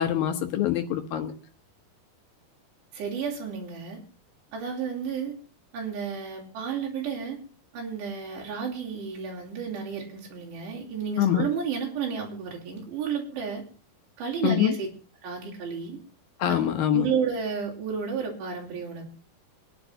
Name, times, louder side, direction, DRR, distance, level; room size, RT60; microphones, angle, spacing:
voice 1, 0.0-1.3 11.2-11.5 14.4-14.7 16.4-17.1, left 10 dB, 70° left, 6 dB, 2.5 m, -24 dB
voice 2, 2.9-4.0 4.5-5.4 5.7-7.4 7.7-13.6 14.2-14.9 15.2-16.0 16.5-16.6 16.9-19.1, right 6 dB, 90° right, -2 dB, 5.2 m, -32 dB
25.5 x 10.5 x 2.7 m, 0.40 s
omnidirectional pair, 4.8 m